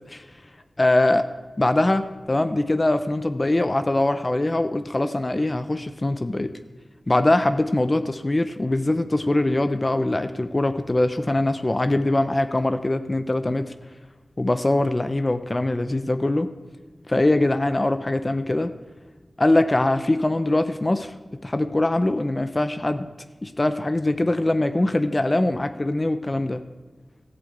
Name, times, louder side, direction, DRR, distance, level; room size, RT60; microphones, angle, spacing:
voice 1, 0.8-1.2 1.6-6.5 7.1-13.7 14.4-16.5 17.1-18.7 19.4-21.1 21.4-23.1 23.4-26.6, left 2 dB, 30° left, 9 dB, 0.7 m, -22 dB
14.0 x 8.2 x 8.1 m, 1.3 s
wide cardioid pair, 85°, 0 cm